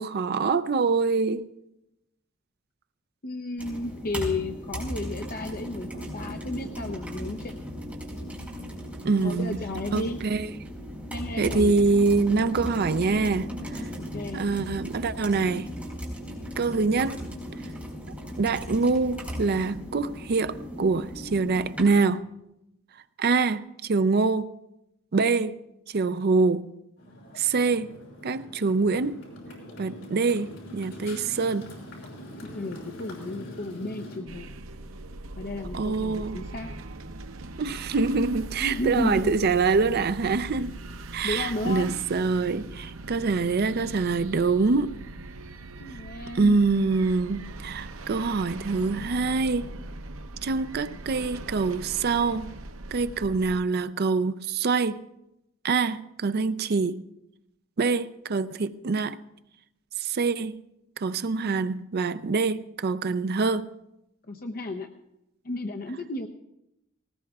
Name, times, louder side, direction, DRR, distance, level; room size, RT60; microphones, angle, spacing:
voice 1, 0.0-1.5 9.0-9.6 9.9-10.5 11.4-13.9 14.3-15.7 16.6-17.2 18.4-22.3 23.2-24.5 25.1-25.6 25.9-26.7 27.4-27.9 28.2-29.2 29.8-31.7 35.7-36.4 37.6-40.7 41.1-45.0 46.3-49.7 50.4-52.5 52.9-55.0 55.6-57.0 57.8-59.2 60.0-60.6 61.0-63.7, right 4 dB, 50° right, 0.5 m, -25 dB
voice 2, 3.2-7.5 9.2-10.2 11.1-11.8 14.0-14.5 32.5-34.5 35.4-36.7 38.6-39.6 41.2-42.0 45.8-46.6 64.3-64.9 65.4-66.3, left 2 dB, 45° left, 0.7 m, -33 dB
sound 1, 3.6-21.9, equal, 5° right, 4.4 m, -37 dB
Motorcycle, 27.0-34.2, equal, 75° left, 5.5 m, -43 dB
sound 2, 34.3-53.6, right 2 dB, 85° right, 0.7 m, -40 dB
19.5 x 19.0 x 2.4 m
head